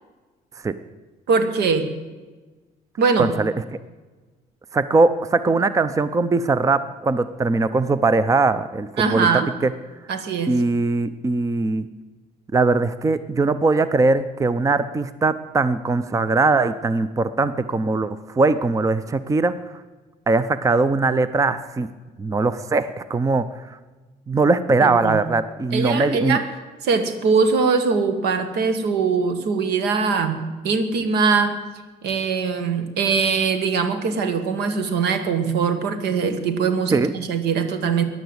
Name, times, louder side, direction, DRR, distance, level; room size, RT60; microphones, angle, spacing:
voice 1, 1.3-1.9 3.0-3.3 9.0-9.5 10.1-10.6 24.8-25.2 25.7-26.4 26.8-30.4 30.6-31.5 32.0-38.0, right 5 dB, 80° right, 10 dB, 1.8 m, -21 dB
voice 2, 3.2-3.5 4.7-9.3 9.6-9.7 10.5-11.9 12.5-19.5 20.3-21.9 22.2-23.8 24.3-26.4 36.9-37.1, right 3 dB, 20° right, 14 dB, 0.6 m, -20 dB
15.0 x 10.5 x 8.0 m, 1.3 s
cardioid pair, 110°, 17 cm